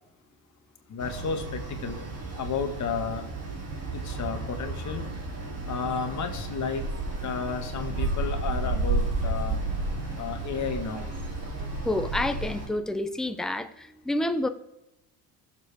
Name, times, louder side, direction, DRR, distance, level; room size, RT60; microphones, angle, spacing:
voice 1, 0.9-2.0 2.4-3.2 3.9-5.0 5.7-6.8 7.2-9.6 10.2-11.0, left 6 dB, 35° left, 6 dB, 1.6 m, -32 dB
sound 1, 1.0-12.7, right 3 dB, 30° right, 2.8 m, -32 dB
sound 2, 5.7-12.8, equal, 15° right, 4.2 m, -51 dB
voice 2, 11.9-13.7 14.1-14.5, left 1 dB, ahead, 8 dB, 0.5 m, -28 dB
21.0 x 7.2 x 3.5 m, 0.90 s
cardioid pair, 145°, 49 cm